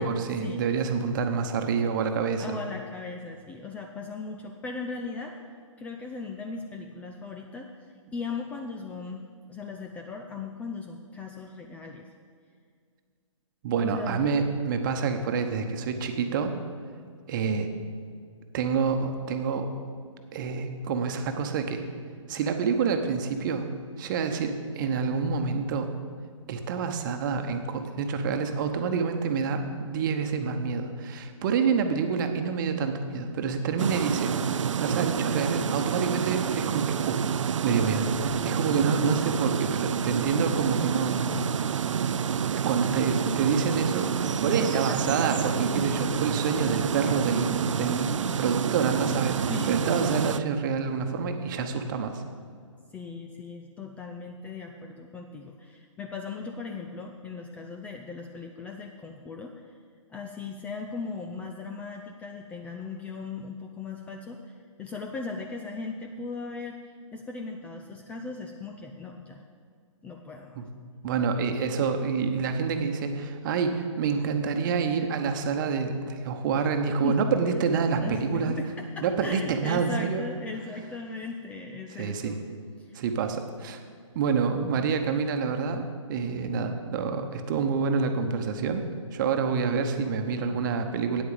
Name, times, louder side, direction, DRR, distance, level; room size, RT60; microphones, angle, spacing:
voice 1, 0.0-2.6 13.6-16.5 17.3-17.7 18.5-19.7 20.3-21.8 22.3-23.7 24.0-25.9 26.5-34.3 34.8-37.2 37.6-41.4 42.0-42.2 42.5-52.2 70.5-70.6 71.0-78.6 79.0-80.2 82.0-82.4 82.9-83.8 84.1-85.8 86.1-88.8 89.1-91.2, right 5 dB, 40° right, 6 dB, 1.0 m, -27 dB
voice 2, 2.4-5.4 5.8-7.7 8.1-12.1 13.8-14.2 44.6-45.2 45.5-46.1 49.5-50.3 52.9-59.7 60.1-66.8 67.1-69.4 70.0-70.6 77.0-77.3 78.0-82.4 82.9-83.0, left 4 dB, 10° left, 2 dB, 0.3 m, -38 dB
sound 1, 33.8-50.4, right 7 dB, 70° right, 0.4 m, -28 dB
9.1 x 8.5 x 6.9 m, 2.1 s
figure-of-eight pair, 130°, 17 cm